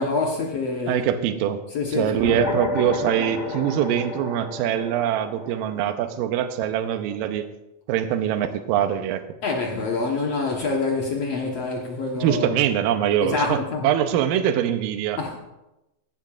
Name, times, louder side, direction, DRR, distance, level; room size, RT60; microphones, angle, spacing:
voice 1, 0.0-1.0 1.7-2.2 9.4-12.6 13.2-13.9 15.2-15.4, left 3 dB, 65° left, 0 dB, 1.6 m, -26 dB
voice 2, 0.9-1.6 1.9-7.5 7.9-9.2 12.1-15.2, right 10 dB, 80° right, 9 dB, 2.3 m, -23 dB
sound 1, 2.2-7.0, left 2 dB, 35° left, 1.7 m, -31 dB
16.0 x 12.0 x 2.4 m, 0.93 s
omnidirectional pair, 4.3 m